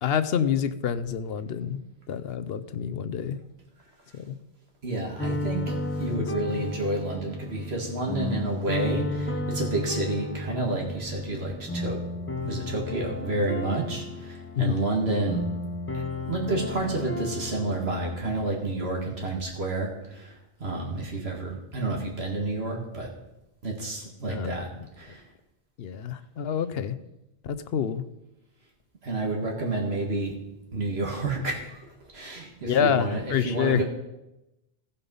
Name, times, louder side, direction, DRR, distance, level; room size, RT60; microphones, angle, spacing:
voice 1, 0.0-1.8 2.1-3.4 4.1-4.4 6.1-6.2 14.6-14.8 24.3-24.6 25.8-27.0 27.4-28.0 32.6-33.8, left 8 dB, 75° left, 12 dB, 0.9 m, -27 dB
voice 2, 4.8-12.0 12.4-15.5 15.9-23.1 23.6-24.7 25.0-25.2 29.0-30.4 30.7-33.8, right 2 dB, 80° right, 0 dB, 1.9 m, -30 dB
sound 1, 5.2-18.5, left 2 dB, 15° left, 0.7 m, -33 dB
16.0 x 5.6 x 5.4 m, 0.92 s
omnidirectional pair, 1.0 m